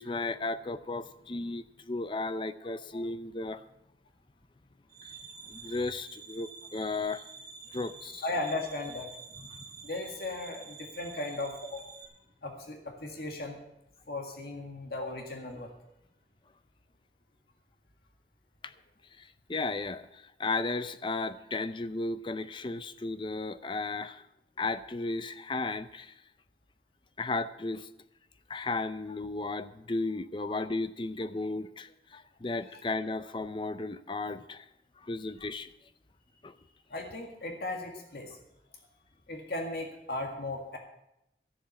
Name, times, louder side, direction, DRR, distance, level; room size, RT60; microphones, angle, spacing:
voice 1, 0.0-3.6 5.0-5.1 5.5-7.3 7.7-8.3 9.4-9.6 18.6-18.7 19.2-24.2 24.6-26.1 27.2-27.9 28.5-34.7 35.0-35.7 36.4-36.5, left 3 dB, 30° left, 12 dB, 0.5 m, -34 dB
sound 1, 4.9-12.0, right 5 dB, 55° right, 2.6 m, -48 dB
voice 2, 8.2-9.1 9.8-11.8 12.4-13.6 14.1-15.7 30.4-30.6 32.7-32.8 36.9-38.4 39.3-40.8, left 2 dB, 60° left, 3 dB, 1.8 m, -36 dB
13.0 x 7.3 x 8.3 m, 0.84 s
head